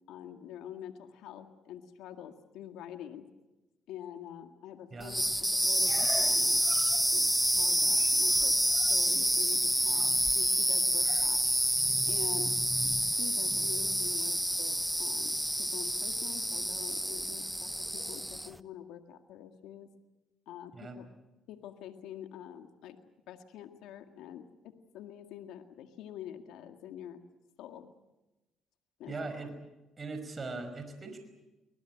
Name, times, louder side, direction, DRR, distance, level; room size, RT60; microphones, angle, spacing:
voice 1, 0.1-3.3 3.9-6.6 7.1-8.6 8.9-11.4 12.1-12.5 13.2-19.9 20.5-21.1 21.5-23.0 23.3-27.2 27.6-28.0 29.0-29.3, left 10 dB, 85° left, 7 dB, 1.9 m, -46 dB
sound 1, 5.0-18.6, equal, 5° right, 0.9 m, -28 dB
voice 2, 29.1-29.5 30.0-31.2, right 3 dB, 35° right, 8 dB, 5.4 m, -40 dB
24.0 x 20.0 x 9.0 m, 1.0 s
supercardioid pair, 80°, 0 cm